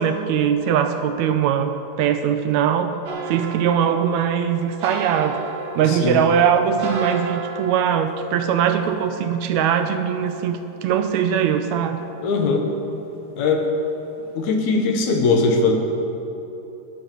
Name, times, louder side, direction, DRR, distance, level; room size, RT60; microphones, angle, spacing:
voice 1, 0.0-1.7 2.0-2.9 3.3-5.4 5.8-12.0, right 8 dB, 80° right, 8 dB, 1.8 m, -21 dB
sound 1, 3.1-12.3 12.7-13.7 14.0-14.4 14.7-14.8, right 4 dB, 50° right, 1.8 m, -35 dB
voice 2, 5.9-6.2 12.2-12.6 13.4-13.6 14.3-15.7, left 4 dB, 75° left, 3 dB, 2.7 m, -20 dB
14.0 x 11.0 x 6.0 m, 3.0 s
omnidirectional pair, 3.4 m